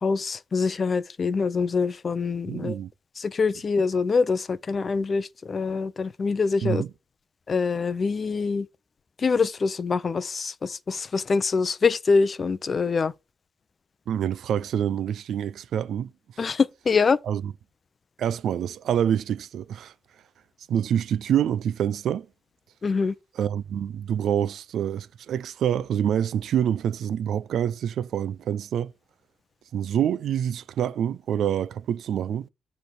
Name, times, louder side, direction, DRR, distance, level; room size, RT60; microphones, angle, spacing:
voice 1, 0.0-2.8 3.2-6.8 7.5-8.7 9.2-13.1 16.4-17.2 22.8-23.1, left 4 dB, 40° left, 0.6 m, -24 dB
voice 2, 2.4-2.9 6.6-6.9 14.1-16.1 16.4-16.5 17.3-17.5 18.2-19.9 20.7-22.3 23.3-28.9 29.7-32.5, right 9 dB, 75° right, 0.5 m, -26 dB
9.2 x 3.4 x 5.7 m
cardioid pair, 90°, 0 cm